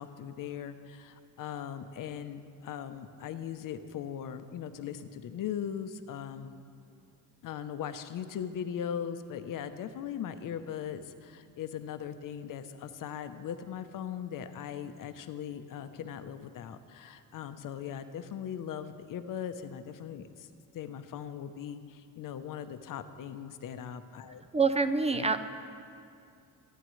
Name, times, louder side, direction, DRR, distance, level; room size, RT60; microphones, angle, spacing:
voice 1, 0.0-6.5 7.4-20.5 20.7-24.4 25.1-25.3, left 8 dB, 65° left, 10 dB, 0.8 m, -39 dB
voice 2, 24.5-25.4, right 4 dB, 20° right, 9 dB, 0.5 m, -26 dB
24.5 x 10.5 x 3.2 m, 2.5 s
cardioid pair, 135°, 35 cm